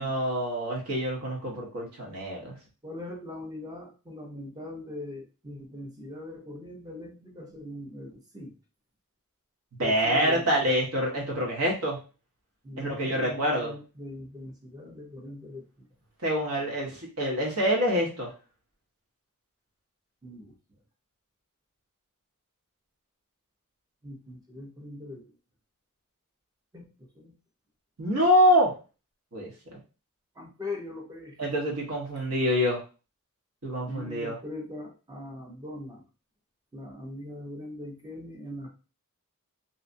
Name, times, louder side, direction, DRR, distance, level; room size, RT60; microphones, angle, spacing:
voice 1, 0.0-2.5 9.8-12.0 12.8-13.7 16.2-16.9 17.2-18.3 28.0-28.7 29.3-29.8 31.4-32.8 33.6-34.3, equal, 70° right, -2 dB, 1.1 m, -26 dB
voice 2, 2.8-8.5 9.8-10.4 12.6-15.9 20.2-20.5 24.0-25.3 26.7-27.3 30.4-31.4 33.9-36.0 36.7-38.7, left 1 dB, 15° right, 1 dB, 0.6 m, -41 dB
2.7 x 2.3 x 2.5 m, 0.33 s
head